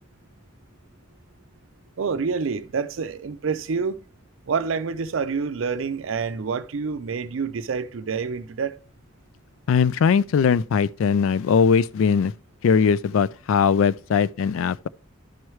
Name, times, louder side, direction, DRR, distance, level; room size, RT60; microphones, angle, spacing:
voice 1, 2.0-4.0 4.5-8.8, right 5 dB, 70° right, 0.5 m, -27 dB
voice 2, 9.7-12.3 12.6-14.9, left 6 dB, 75° left, 0.3 m, -20 dB
12.0 x 4.7 x 3.1 m
head